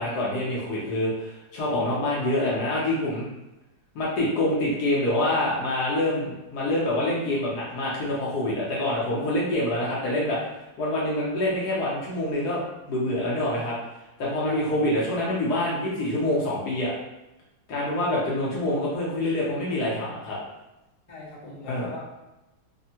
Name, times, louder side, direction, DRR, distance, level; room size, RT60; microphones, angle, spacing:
voice 1, 0.0-3.3 3.9-10.4 10.8-13.8 14.2-16.9 17.7-20.4 21.7-21.9, left 1 dB, 65° left, -6 dB, 1.0 m, -26 dB
voice 2, 14.5-14.9 21.1-22.0, left 2 dB, 40° left, -8 dB, 0.5 m, -40 dB
3.3 x 2.1 x 2.7 m, 0.98 s
omnidirectional pair, 2.1 m